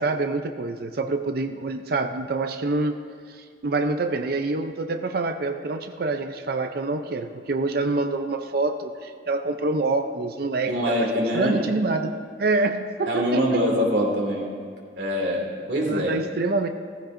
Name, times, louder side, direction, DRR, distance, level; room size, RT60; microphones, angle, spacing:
voice 1, 0.0-2.9 3.3-11.1 11.3-12.1 12.4-13.6 15.9-16.7, right 3 dB, 55° right, 7 dB, 0.5 m, -26 dB
voice 2, 10.7-11.6 13.1-14.5 15.0-16.1, equal, 70° right, -1 dB, 2.4 m, -24 dB
16.0 x 14.5 x 2.6 m, 2.1 s
head